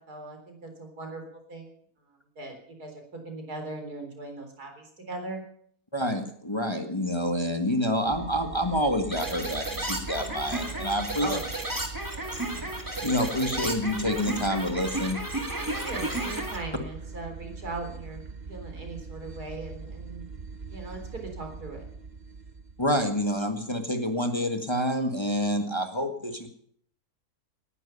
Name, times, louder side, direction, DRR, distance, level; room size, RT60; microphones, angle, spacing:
voice 1, 0.0-1.7 2.4-5.4 11.2-11.6 15.5-18.2 18.5-20.2 20.7-21.8, right 2 dB, 90° right, 3 dB, 4.5 m, -39 dB
voice 2, 5.9-11.3 13.0-15.2 22.8-26.5, equal, 20° left, 5 dB, 1.7 m, -28 dB
sound 1, 8.1-23.4, right 4 dB, 40° right, 0.8 m, -42 dB
sound 2, 9.1-16.6, right 1 dB, 10° right, 2.3 m, -33 dB
19.0 x 11.0 x 7.0 m, 0.63 s
omnidirectional pair, 1.6 m